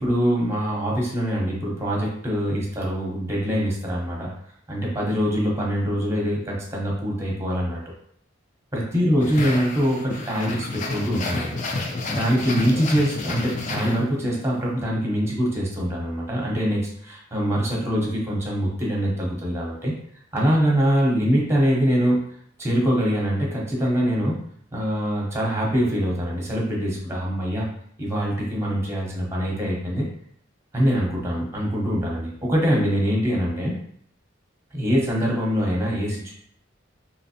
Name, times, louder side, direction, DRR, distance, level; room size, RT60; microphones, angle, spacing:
voice 1, 0.0-4.3 4.7-7.8 8.7-11.6 12.1-19.9 20.3-22.2 22.6-24.4 24.7-27.7 28.0-30.1 30.7-33.7 34.7-36.3, equal, 15° right, -2 dB, 0.8 m, -23 dB
sound 1, 9.2-14.4, left 2 dB, 40° left, 0.4 m, -30 dB
3.1 x 2.9 x 2.8 m, 0.66 s
head